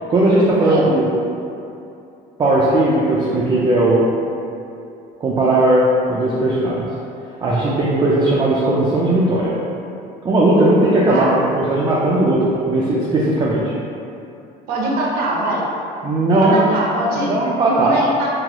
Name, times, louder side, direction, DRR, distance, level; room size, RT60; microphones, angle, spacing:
voice 1, 0.1-1.1 2.4-4.0 5.2-6.9 7.4-9.5 10.2-11.2 11.6-13.7 16.0-16.6 17.2-17.9, right 2 dB, 25° right, -6 dB, 0.4 m, -17 dB
voice 2, 14.7-15.6 16.4-17.3 17.6-18.3, right 2 dB, 70° right, -3 dB, 0.7 m, -22 dB
3.7 x 2.0 x 2.9 m, 2.7 s
cardioid pair, 130°, 17 cm